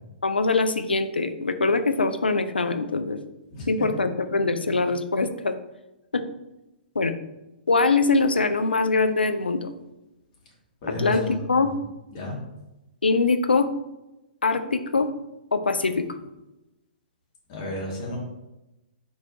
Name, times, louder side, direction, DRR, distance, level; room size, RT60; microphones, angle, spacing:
voice 1, 0.2-3.2 3.7-5.5 6.1-6.2 7.0-7.1 7.7-9.7 11.0-11.7 13.0-13.7 14.4-15.1 15.5-16.1, left 3 dB, 85° left, 9 dB, 0.4 m, -23 dB
voice 2, 10.8-11.7 12.1-12.4 17.5-18.2, left 1 dB, 40° left, -3 dB, 1.4 m, -32 dB
4.3 x 3.1 x 2.6 m, 0.96 s
figure-of-eight pair, 120°, 5 cm